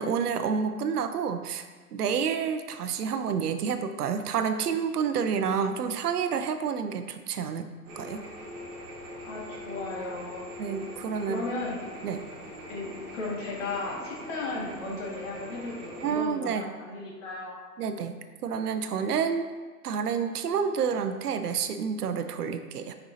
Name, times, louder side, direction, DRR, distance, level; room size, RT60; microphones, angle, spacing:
voice 1, 0.0-1.7 1.9-7.7 8.0-8.2 10.6-11.4 12.0-12.2 16.0-16.7 17.8-18.1 18.4-19.5 19.8-22.9, right 6 dB, 80° right, 9 dB, 0.7 m, -29 dB
sound 1, 7.8-16.2, equal, 15° right, 1.4 m, -42 dB
voice 2, 9.3-10.4 11.2-11.9 12.7-17.5, left 3 dB, 50° left, -3 dB, 1.9 m, -35 dB
6.9 x 5.5 x 2.7 m, 1.4 s
hypercardioid pair, 150°, 46 cm